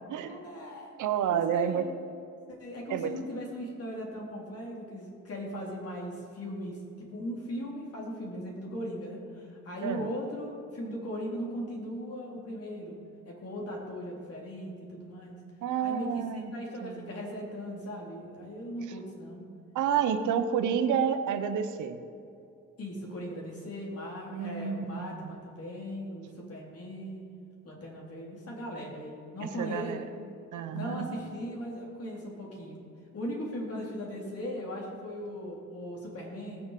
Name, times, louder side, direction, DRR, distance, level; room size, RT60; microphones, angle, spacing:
voice 1, 0.1-1.0 1.3-2.0 2.5-13.0 13.2-15.4 15.8-19.5 22.8-27.2 27.6-30.3 30.7-32.8 33.1-36.6, equal, 50° left, -2 dB, 3.9 m, -38 dB
voice 2, 1.0-1.9 2.9-3.1 9.8-10.1 15.6-16.5 16.8-17.1 19.7-22.0 24.3-25.3 29.4-30.0 30.5-31.1, right 8 dB, 80° right, 9 dB, 1.0 m, -29 dB
18.0 x 7.1 x 6.8 m, 2.5 s
cardioid pair, 90°, 30 cm